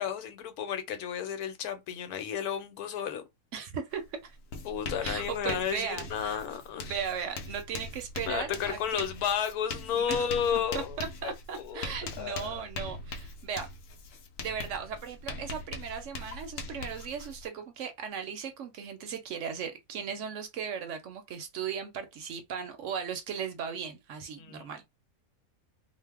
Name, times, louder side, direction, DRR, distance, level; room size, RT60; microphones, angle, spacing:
voice 1, 0.0-3.2 4.6-7.0 8.3-11.9 12.2-12.6 24.4-24.7, left 8 dB, 90° left, 1.2 m, -32 dB
voice 2, 3.5-4.4 5.0-6.4 6.8-9.0 9.9-10.3 10.5-10.6 11.0-13.7 14.4-24.8, right 7 dB, 65° right, 0.8 m, -37 dB
Writing, 3.9-4.1 4.3-17.5, left 3 dB, 70° left, 0.9 m, -41 dB
2.6 x 2.0 x 3.4 m
omnidirectional pair, 1.5 m